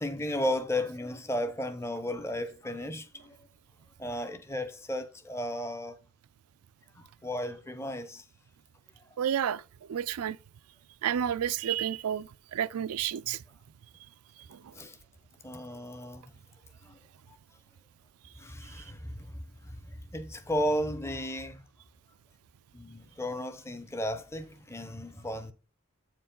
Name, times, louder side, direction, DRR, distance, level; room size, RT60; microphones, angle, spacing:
voice 1, 0.0-3.4 4.0-6.0 7.0-8.2 9.1-9.2 14.7-15.0 15.4-16.3 16.8-17.0 17.3-17.4 18.4-21.6 22.7-25.5, left 1 dB, 10° left, 0.6 m, -34 dB
voice 2, 9.2-9.6 9.9-10.4 11.0-13.4 14.5-14.6, right 9 dB, 85° right, 0.4 m, -30 dB
8.1 x 4.6 x 3.7 m
head